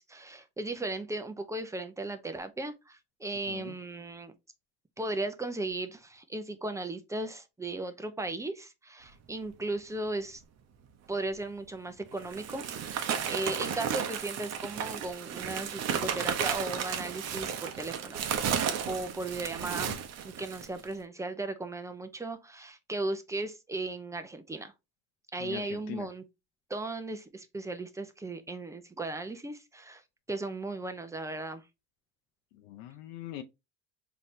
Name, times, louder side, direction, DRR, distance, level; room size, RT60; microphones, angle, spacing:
voice 1, 0.1-4.3 5.0-10.4 11.1-19.9 20.2-24.7 25.3-26.2 26.7-30.0 30.3-31.6, right 2 dB, 10° right, 0.5 m, -36 dB
sound 1, 11.4-11.5 12.1-20.8, right 8 dB, 50° right, 0.7 m, -33 dB
voice 2, 25.4-26.1 32.6-33.4, left 12 dB, 80° left, 0.6 m, -42 dB
4.0 x 2.9 x 3.1 m
cardioid pair, 115°, 35 cm